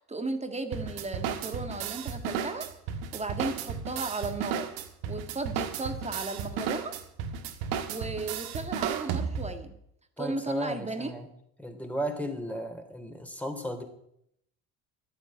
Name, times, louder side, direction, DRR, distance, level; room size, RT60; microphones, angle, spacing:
voice 1, 0.1-2.7 3.1-4.7 5.1-6.9 7.9-9.7 10.2-11.1, right 3 dB, 15° right, 7 dB, 1.9 m, -35 dB
sound 1, 0.7-9.6, right 7 dB, 65° right, 1.7 m, -34 dB
voice 2, 10.2-11.3 11.6-13.8, equal, 5° left, 5 dB, 3.4 m, -35 dB
12.0 x 9.4 x 8.8 m, 0.74 s
hypercardioid pair, 65°, 39 cm